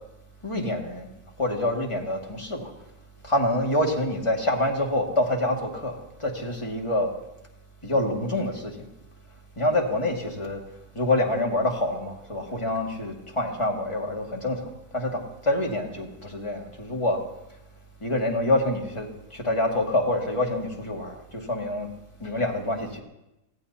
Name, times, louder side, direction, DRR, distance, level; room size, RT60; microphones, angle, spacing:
voice 1, 0.4-1.1 1.4-2.7 3.2-7.1 7.8-8.8 9.6-10.6 10.9-14.7 14.9-17.2 18.0-21.9 22.2-23.0, left 1 dB, 20° left, 0 dB, 2.2 m, -26 dB
25.0 x 18.0 x 2.9 m, 0.92 s
omnidirectional pair, 1.8 m